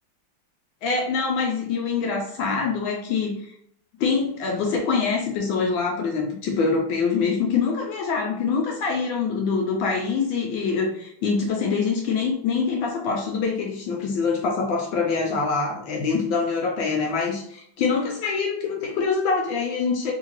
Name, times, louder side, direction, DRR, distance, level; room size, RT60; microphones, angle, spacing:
voice 1, 0.8-3.5 4.0-20.1, left 5 dB, 75° left, 1 dB, 1.3 m, -24 dB
3.7 x 2.8 x 2.9 m, 0.67 s
omnidirectional pair, 2.4 m